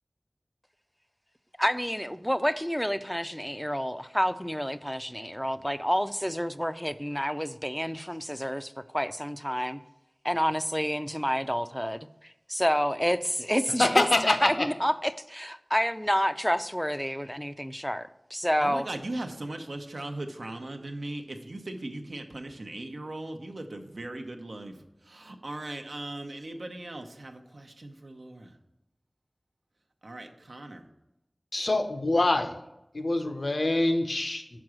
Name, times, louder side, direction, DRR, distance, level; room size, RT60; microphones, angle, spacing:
voice 1, 1.6-9.8 10.2-18.9, equal, 5° left, 0.4 m, -29 dB
voice 2, 13.8-14.7 31.5-32.6 32.9-34.6, left 2 dB, 80° left, 0.7 m, -25 dB
voice 3, 18.6-24.8 25.0-28.5 30.0-30.9, right 2 dB, 85° right, 0.7 m, -38 dB
6.1 x 4.7 x 6.2 m
wide cardioid pair, 55°, 0 cm